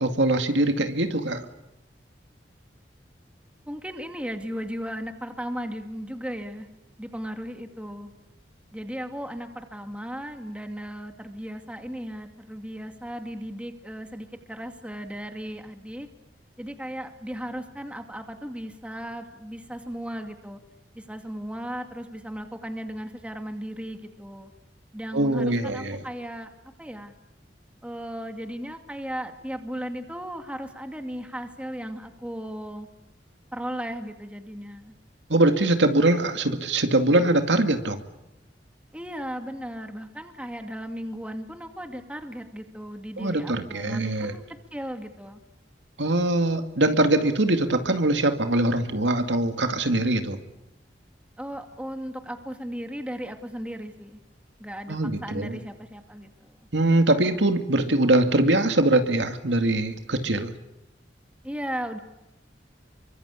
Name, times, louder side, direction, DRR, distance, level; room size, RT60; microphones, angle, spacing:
voice 1, 0.0-1.4 25.1-26.0 35.3-38.0 43.2-44.4 46.0-50.4 54.9-55.6 56.7-60.5, right 2 dB, 85° right, 7 dB, 2.3 m, -22 dB
voice 2, 3.7-6.7 7.0-8.1 8.7-16.1 16.6-20.6 20.9-24.5 24.9-26.5 26.8-27.1 27.8-32.9 33.5-34.9 38.9-44.4 44.7-45.4 51.4-54.2 54.6-56.6 61.4-62.0, equal, 5° right, 5 dB, 2.2 m, -36 dB
27.5 x 24.0 x 8.4 m, 0.90 s
head